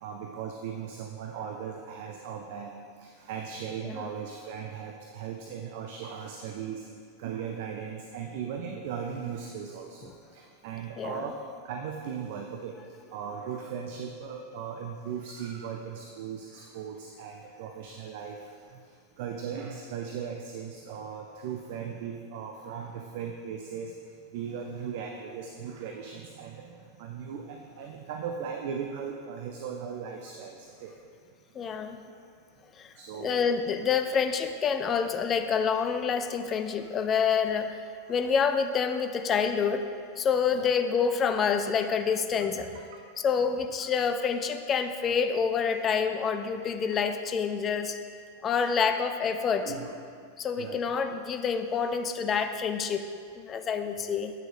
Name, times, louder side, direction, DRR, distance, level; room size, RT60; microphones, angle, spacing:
voice 1, 0.0-2.7 3.0-6.8 7.2-11.4 11.6-12.7 13.1-18.4 19.2-23.9 24.3-30.9 33.0-33.5 38.1-38.2 40.5-40.7 42.9-43.0 43.8-43.9 46.6-47.0 48.5-48.8 49.6-50.0 50.6-50.9, right 7 dB, 50° right, 3 dB, 0.5 m, -38 dB
voice 2, 11.0-11.3 31.6-32.0 32.8-32.9 33.2-37.8 38.1-39.8 40.2-42.7 43.2-48.0 48.4-49.7 50.4-53.1 53.4-54.3, left 6 dB, 25° left, 8 dB, 0.5 m, -27 dB
9.0 x 6.2 x 3.4 m, 2.2 s
figure-of-eight pair, 90°, 0 cm